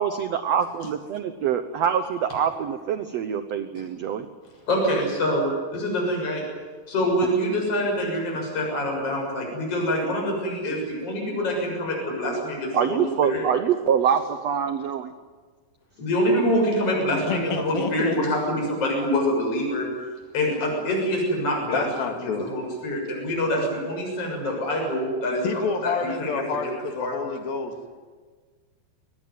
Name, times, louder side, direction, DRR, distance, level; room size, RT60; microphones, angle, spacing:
voice 1, 0.0-4.3 12.7-15.1, right 8 dB, 80° right, 9 dB, 1.5 m, -25 dB
voice 2, 4.7-6.4 6.9-13.4 16.0-19.9 20.3-21.8 22.4-25.4 25.8-25.9 26.2-26.3 27.0-27.1, equal, 35° left, -1 dB, 7.8 m, -25 dB
voice 3, 17.3-18.2 21.7-22.5 25.4-27.9, left 5 dB, 70° left, 5 dB, 4.0 m, -28 dB
23.5 x 19.0 x 9.6 m, 1.5 s
omnidirectional pair, 4.4 m